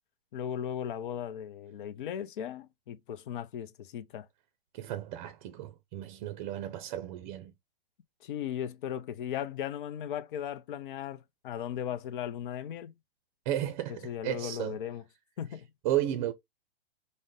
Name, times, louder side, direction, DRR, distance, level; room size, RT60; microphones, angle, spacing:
voice 1, 0.3-4.3 8.2-12.9 14.0-15.0 15.4-15.7, left 9 dB, 55° left, 0.6 m, -37 dB
voice 2, 4.7-7.5 13.5-14.8 15.8-16.3, right 12 dB, 35° right, 0.5 m, -33 dB
5.1 x 2.1 x 3.6 m
hypercardioid pair, 120°, 31 cm